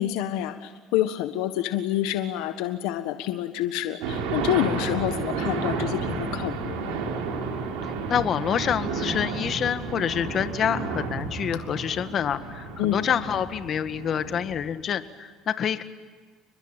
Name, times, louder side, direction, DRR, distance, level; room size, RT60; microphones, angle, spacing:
voice 1, 0.0-7.0 12.8-13.0, left 13 dB, 85° left, 8 dB, 1.5 m, -28 dB
sound 1, 4.0-14.7, right 4 dB, 85° right, 5.1 m, -31 dB
voice 2, 7.8-15.8, left 8 dB, 45° left, 10 dB, 1.8 m, -27 dB
30.0 x 21.5 x 9.1 m, 1.5 s
supercardioid pair, 105°, 0 cm